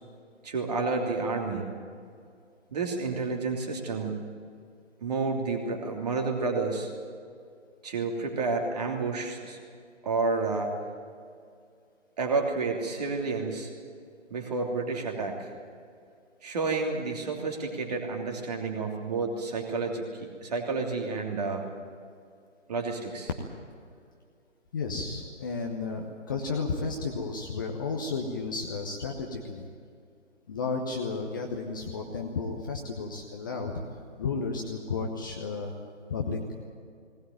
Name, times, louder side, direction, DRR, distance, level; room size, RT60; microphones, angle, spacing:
voice 1, 0.4-1.7 2.7-4.3 5.0-6.9 7.8-9.6 10.0-10.7 12.2-13.7 14.3-15.5 16.4-21.6 22.7-23.3, right 3 dB, 35° right, 2 dB, 3.1 m, -30 dB
voice 2, 24.7-29.7 30.5-33.7 34.2-35.7 36.1-36.4, left 4 dB, 15° left, 1 dB, 1.0 m, -33 dB
19.5 x 19.0 x 9.1 m, 2.3 s
figure-of-eight pair, 150°, 37 cm